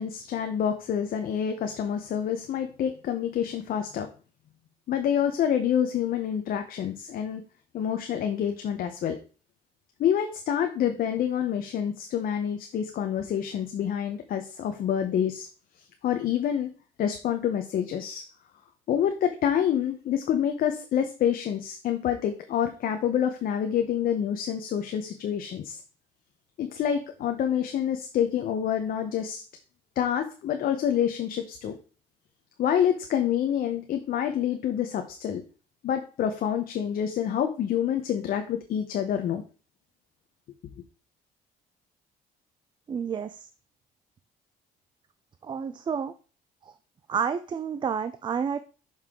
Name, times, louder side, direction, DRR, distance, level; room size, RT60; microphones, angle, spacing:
voice 1, 0.0-4.1 4.9-7.4 7.7-9.2 10.0-15.5 16.0-16.7 17.0-18.2 18.9-25.8 26.6-29.4 30.0-31.8 32.6-35.4 35.8-39.4, left 9 dB, 60° left, 6 dB, 0.8 m, -27 dB
voice 2, 42.9-43.5 45.4-46.1 46.6-46.7 47.1-48.6, right 7 dB, 30° right, 12 dB, 0.4 m, -30 dB
6.4 x 5.6 x 3.7 m, 0.36 s
cardioid pair, 110°, 17 cm